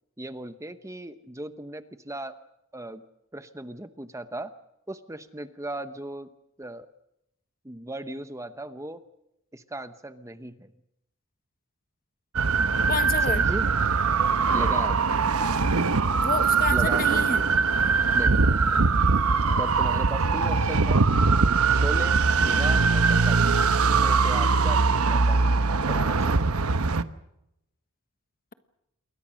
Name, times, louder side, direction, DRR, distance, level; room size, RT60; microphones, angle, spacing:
voice 1, 0.2-2.4 2.7-3.0 3.3-4.5 4.9-6.3 6.6-6.9 7.6-9.0 9.5-10.7 13.3-13.7 14.5-15.0 16.7-17.5 18.1-18.6 19.6-21.1 21.7-23.6 23.9-26.4, right 1 dB, 15° right, 11 dB, 0.9 m, -37 dB
sound 1, 12.4-27.0, right 4 dB, 75° right, 1.0 m, -22 dB
voice 2, 12.9-13.4 16.1-17.4, left 4 dB, 40° left, 11 dB, 1.3 m, -29 dB
28.5 x 22.0 x 6.4 m, 0.84 s
head